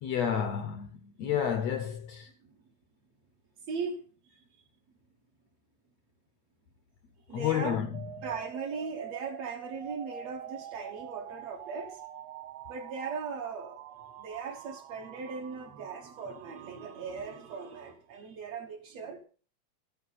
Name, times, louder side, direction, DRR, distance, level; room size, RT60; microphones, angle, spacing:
voice 1, 0.0-2.3 7.3-8.0, left 9 dB, 70° left, 1.7 m, -30 dB
voice 2, 3.7-4.0 7.3-7.8 8.2-12.0 12.7-19.2, right 5 dB, 60° right, 2.1 m, -39 dB
sound 1, 7.9-17.9, right 12 dB, 75° right, 2.0 m, -46 dB
13.0 x 9.5 x 4.2 m
omnidirectional pair, 3.9 m